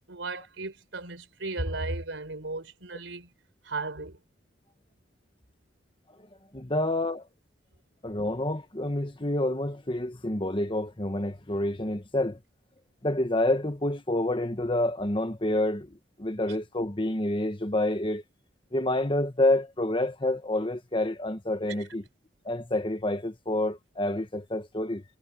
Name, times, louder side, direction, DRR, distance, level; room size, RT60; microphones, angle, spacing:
voice 1, 0.1-3.3 3.6-4.2, right 2 dB, 90° right, 4.5 m, -35 dB
voice 2, 6.2-7.3 8.0-12.4 13.0-18.2 18.7-22.0 22.4-25.0, left 1 dB, 25° left, 1.5 m, -28 dB
head